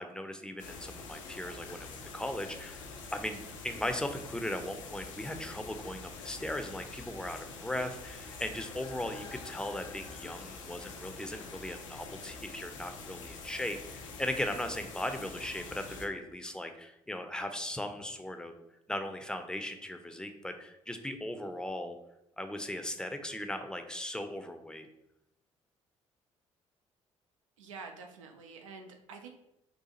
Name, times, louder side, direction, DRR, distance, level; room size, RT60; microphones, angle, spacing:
voice 1, 0.0-18.6 18.9-22.0 22.4-24.9, left 1 dB, 5° left, 7 dB, 0.5 m, -38 dB
sound 1, 0.6-16.1, left 4 dB, 85° left, 0.4 m, -46 dB
voice 2, 27.6-29.3, right 4 dB, 85° right, 5 dB, 0.4 m, -47 dB
3.9 x 2.4 x 2.8 m, 0.85 s
hypercardioid pair, 50°, 16 cm